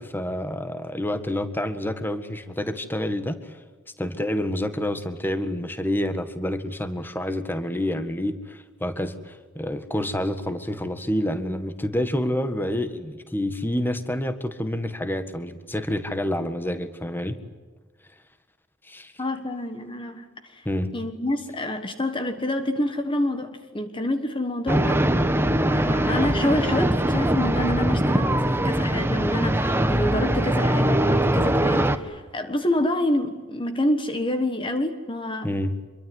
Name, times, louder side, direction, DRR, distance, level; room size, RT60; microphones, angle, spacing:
voice 1, 0.0-3.6 4.0-17.4 18.9-19.1 20.6-20.9 35.4-35.8, left 1 dB, 10° left, 10 dB, 1.7 m, -28 dB
voice 2, 19.2-20.7 20.9-25.0 25.7-35.6, left 1 dB, 25° left, 8 dB, 1.4 m, -27 dB
sound 1, 24.7-32.0, right 1 dB, 10° right, 1.2 m, -22 dB
26.0 x 23.0 x 9.7 m, 1.3 s
head